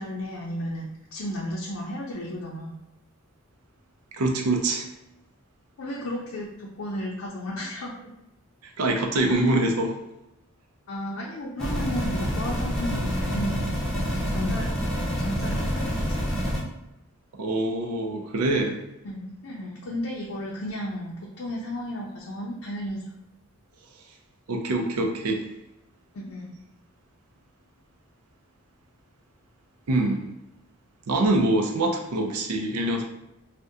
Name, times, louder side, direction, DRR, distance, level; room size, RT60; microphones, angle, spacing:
voice 1, 0.0-2.8 5.8-7.9 9.2-9.5 10.9-13.7 14.1-14.8 15.2-16.2 19.0-23.1 26.1-26.5, left 1 dB, 65° left, -4 dB, 0.5 m, -33 dB
voice 2, 4.1-4.9 8.8-10.0 17.4-18.8 24.5-25.5 29.9-30.2 31.1-33.1, right 2 dB, 80° right, 3 dB, 0.5 m, -24 dB
sound 1, 11.6-16.6, equal, ahead, 0.5 m, -27 dB
2.7 x 2.1 x 3.5 m, 0.90 s
head